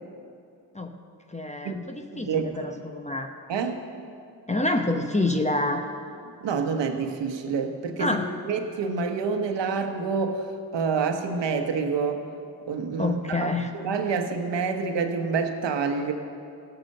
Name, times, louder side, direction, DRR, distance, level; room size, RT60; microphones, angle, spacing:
voice 1, 1.3-3.3 4.5-5.8 8.0-8.3 13.0-13.7, left 2 dB, 15° left, 5 dB, 0.9 m, -27 dB
voice 2, 2.1-2.6 3.5-3.8 6.4-8.2 8.5-12.2 12.7-13.5 13.7-16.1, right 5 dB, 75° right, 6 dB, 1.2 m, -27 dB
16.5 x 6.1 x 6.6 m, 2.5 s
supercardioid pair, 50°, 43 cm